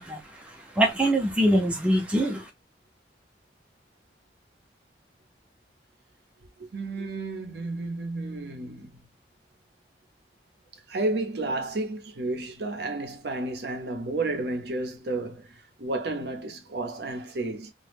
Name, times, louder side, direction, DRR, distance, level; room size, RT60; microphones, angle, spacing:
voice 1, 0.0-2.5, right 1 dB, 5° right, 0.5 m, -24 dB
voice 2, 6.7-8.9 10.9-17.7, right 2 dB, 65° right, 0.6 m, -32 dB
2.1 x 2.0 x 3.2 m
head